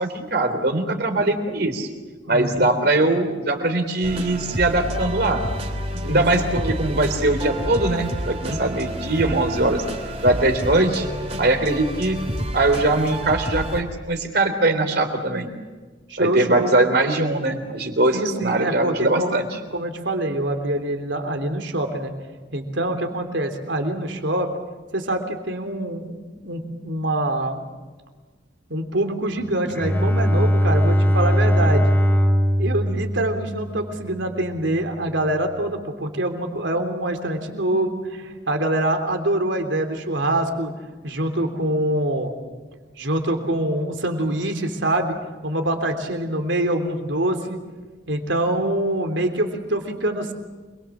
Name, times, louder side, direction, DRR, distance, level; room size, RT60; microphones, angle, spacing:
voice 1, 0.0-1.9 2.3-5.4 5.9-9.8 10.2-11.1 11.4-12.2 12.5-15.5 16.2-19.5, right 2 dB, 55° right, 6 dB, 3.5 m, -21 dB
voice 2, 1.0-1.3 2.2-2.7 3.0-3.1 6.1-6.2 6.5-6.7 8.4-8.8 16.1-16.7 18.1-19.5 19.7-22.1 22.5-24.5 24.9-26.2 26.4-27.6 28.7-31.9 32.6-40.7 41.0-42.3 43.0-45.2 45.4-47.6 48.1-50.3, right 1 dB, 80° right, 6 dB, 3.4 m, -25 dB
sound 1, 4.0-13.8, equal, 35° right, 3.0 m, -29 dB
Bowed string instrument, 29.7-34.2, equal, 10° left, 3.2 m, -20 dB
27.5 x 22.5 x 7.4 m, 1.3 s
head